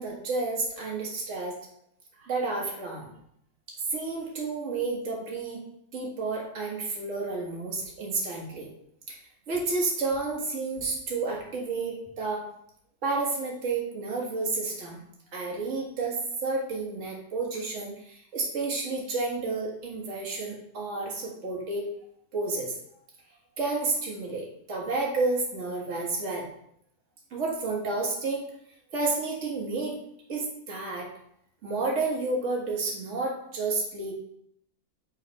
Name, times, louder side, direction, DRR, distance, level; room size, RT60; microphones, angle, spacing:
voice 1, 0.0-1.6 2.2-3.1 3.9-5.6 5.9-8.7 9.1-9.2 9.5-12.5 13.0-15.0 15.3-21.9 22.3-22.7 23.6-26.5 27.3-28.5 28.9-30.0 30.3-31.1 31.6-34.1, right 3 dB, 40° right, -2 dB, 1.8 m, -30 dB
7.3 x 3.4 x 5.3 m, 0.71 s
omnidirectional pair, 2.0 m